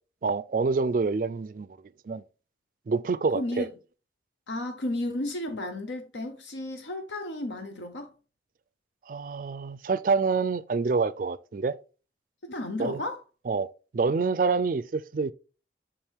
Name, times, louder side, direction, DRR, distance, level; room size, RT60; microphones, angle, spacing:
voice 1, 0.2-1.7 2.1-2.2 2.9-3.7 9.1-11.8 12.8-13.0 13.5-13.7 13.9-15.3, right 4 dB, 50° right, 0.3 m, -27 dB
voice 2, 3.3-3.7 4.5-8.1 12.4-13.2, left 1 dB, 80° left, 0.8 m, -33 dB
7.0 x 4.5 x 3.5 m
head